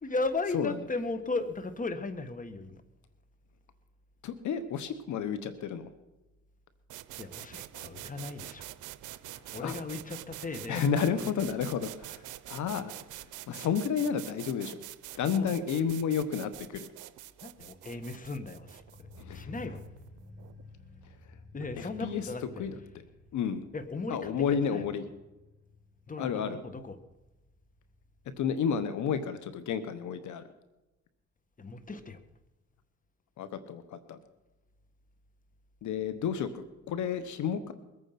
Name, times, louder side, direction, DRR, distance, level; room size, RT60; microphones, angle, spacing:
voice 1, 0.0-2.8 7.2-8.7 9.5-10.8 15.1-15.5 17.4-19.1 19.3-19.8 21.5-22.7 23.7-24.9 26.1-27.0 31.6-32.2, left 3 dB, 25° left, 10 dB, 1.6 m, -36 dB
voice 2, 4.2-5.9 9.6-9.8 10.7-12.9 13.2-14.8 15.2-16.9 19.2-19.5 21.8-22.2 22.6-23.0 23.3-23.6 24.1-25.0 26.2-26.6 28.4-30.4 33.4-34.2 35.8-37.7, left 7 dB, 75° left, 11 dB, 1.2 m, -31 dB
sound 1, 6.9-20.6, right 15 dB, 85° right, 0.7 m, -46 dB
sound 2, 18.5-29.2 29.5-29.6, left 3 dB, ahead, 6.3 m, -53 dB
22.0 x 9.1 x 5.9 m, 1.0 s
cardioid pair, 90°, 30 cm